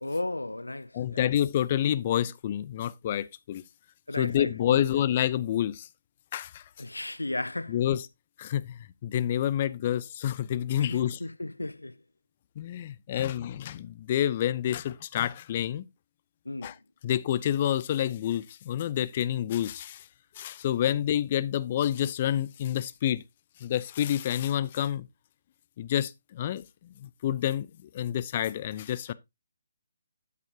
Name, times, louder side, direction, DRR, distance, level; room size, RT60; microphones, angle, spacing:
voice 1, 0.0-1.3 4.1-5.1 6.8-7.8 10.8-12.0 13.1-13.2 16.5-16.7 20.9-21.0, left 2 dB, 85° left, 0.4 m, -35 dB
voice 2, 0.9-3.6 4.2-5.9 6.3-6.6 7.7-8.1 8.4-11.2 12.6-15.9 16.6-16.7 17.0-20.0 20.4-23.2 23.6-25.1 25.8-29.1, left 11 dB, 35° left, 0.6 m, -28 dB
9.2 x 8.3 x 2.8 m
figure-of-eight pair, 145°, 0 cm